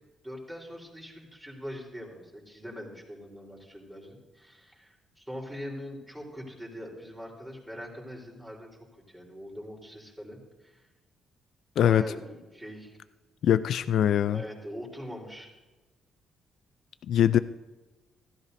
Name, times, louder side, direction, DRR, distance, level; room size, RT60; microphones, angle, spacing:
voice 1, 0.2-10.8 11.8-13.0 14.2-15.5, equal, 10° right, -2 dB, 3.8 m, -42 dB
voice 2, 13.4-14.4 17.1-17.4, left 10 dB, 70° left, 14 dB, 0.3 m, -22 dB
16.0 x 13.5 x 2.7 m, 1.2 s
cardioid pair, 90°, 0 cm